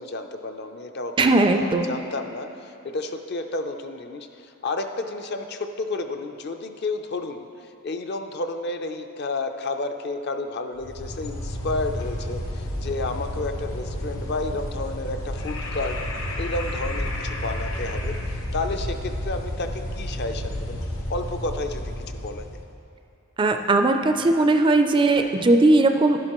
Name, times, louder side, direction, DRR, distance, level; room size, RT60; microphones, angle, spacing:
voice 1, 0.0-7.5 7.8-16.0 16.4-20.8 21.1-22.5, left 2 dB, 50° left, 6 dB, 0.5 m, -31 dB
voice 2, 1.2-1.9 23.4-26.2, right 2 dB, 25° right, 6 dB, 0.3 m, -18 dB
sound 1, 10.8-22.7, left 1 dB, 70° left, 1.0 m, -31 dB
11.0 x 11.0 x 3.0 m, 2.8 s
head